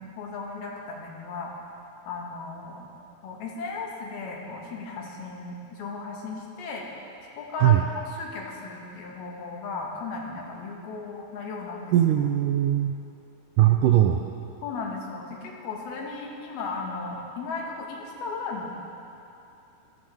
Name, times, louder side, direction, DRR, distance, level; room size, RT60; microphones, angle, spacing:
voice 1, 0.0-1.5 2.1-2.9 3.2-6.9 7.4-11.9 14.6-18.7, left 3 dB, 85° left, -1 dB, 3.5 m, -36 dB
voice 2, 11.9-12.9 13.6-14.2, right 12 dB, 85° right, 4 dB, 1.8 m, -20 dB
18.0 x 13.5 x 3.5 m, 2.7 s
omnidirectional pair, 4.3 m